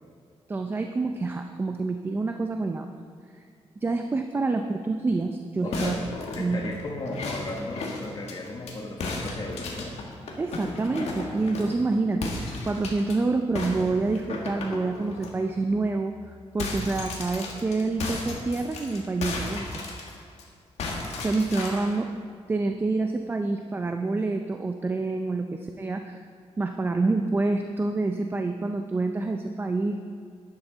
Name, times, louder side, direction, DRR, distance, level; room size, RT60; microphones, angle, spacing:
voice 1, 0.5-2.9 3.8-5.9 6.4-6.6 10.4-19.7 21.2-22.1 22.5-26.2 26.6-30.0, right 3 dB, 20° right, 5 dB, 0.4 m, -27 dB
voice 2, 5.6-6.0 6.3-10.0, left 2 dB, 40° left, 0 dB, 1.3 m, -35 dB
sound 1, 5.7-8.7 9.0-11.8 12.2-13.2 13.6-15.3 15.7-15.9 16.2-20.4 20.8-22.0, left 3 dB, 75° left, 1.8 m, -35 dB
11.5 x 10.5 x 3.9 m, 2.1 s
wide cardioid pair, 165°, 11 cm